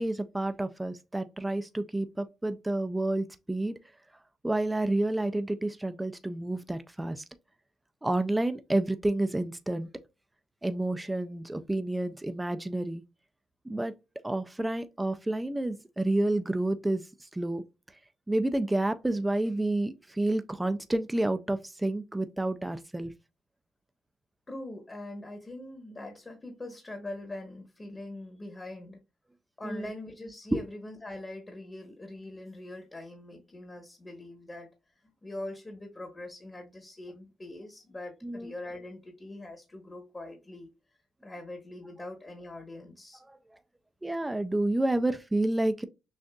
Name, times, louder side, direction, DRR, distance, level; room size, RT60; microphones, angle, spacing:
voice 1, 0.0-3.7 4.4-7.2 8.0-9.9 10.6-13.0 13.7-13.9 14.2-17.0 17.3-17.6 18.3-23.1 29.6-29.9 30.5-30.6 38.2-38.5 43.3-43.4 44.0-45.8, right 1 dB, 10° right, 0.4 m, -29 dB
voice 2, 24.5-29.0 29.6-34.7 35.2-40.7 41.2-43.2, left 1 dB, 25° left, 1.1 m, -42 dB
6.3 x 2.4 x 2.3 m
cardioid pair, 90°, 0 cm